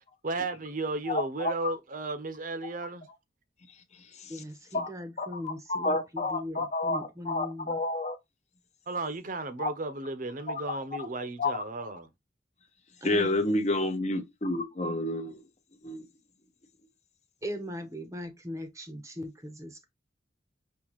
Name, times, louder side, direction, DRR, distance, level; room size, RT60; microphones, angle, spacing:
voice 1, 0.2-3.1 8.9-12.1, right 2 dB, 45° right, 0.8 m, -34 dB
voice 2, 1.1-1.5 4.7-4.9 5.2-8.1 9.6-9.7 11.4-11.5 13.0-15.4 15.8-16.0, left 2 dB, 35° left, 0.8 m, -29 dB
voice 3, 4.3-7.8 13.0-13.4 17.4-19.8, equal, 15° right, 0.8 m, -39 dB
5.5 x 2.8 x 3.1 m
head